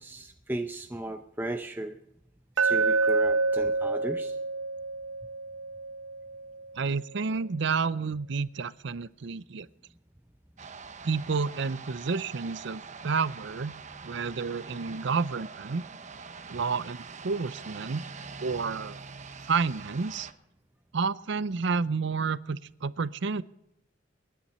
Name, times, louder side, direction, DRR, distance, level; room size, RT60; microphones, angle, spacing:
voice 1, 0.0-2.0 2.6-4.4, right 1 dB, 10° right, 5 dB, 0.7 m, -36 dB
Glass, 2.6-6.7, right 3 dB, 85° right, 0.9 m, -28 dB
voice 2, 6.8-9.7 11.0-13.7 14.0-15.8 16.5-18.0 18.4-19.0 19.5-20.3 20.9-23.4, right 5 dB, 65° right, 17 dB, 0.6 m, -30 dB
sound 1, 10.6-20.3, right 5 dB, 40° right, 1.0 m, -44 dB
28.5 x 10.5 x 4.3 m, 0.84 s
head